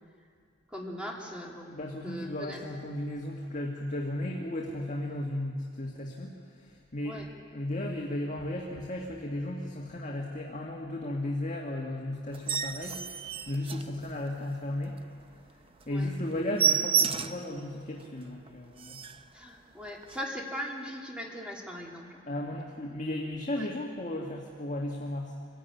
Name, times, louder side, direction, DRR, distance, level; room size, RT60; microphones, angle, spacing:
voice 1, 0.7-1.7 2.0-2.8 7.0-7.2 15.9-16.1 19.3-22.2 23.5-23.7, equal, 5° right, -1 dB, 2.9 m, -39 dB
voice 2, 1.7-7.2 7.5-15.0 15.9-19.0 22.3-25.4, left 1 dB, 40° left, -1 dB, 1.9 m, -35 dB
sound 1, 12.3-14.5 14.9-15.0 15.4-15.5 15.8-15.9 16.2-17.5 18.0-18.1 18.5-18.6 18.8-19.3 20.0-20.2, right 7 dB, 30° right, 0.7 m, -30 dB
25.0 x 16.0 x 9.4 m, 2.2 s
head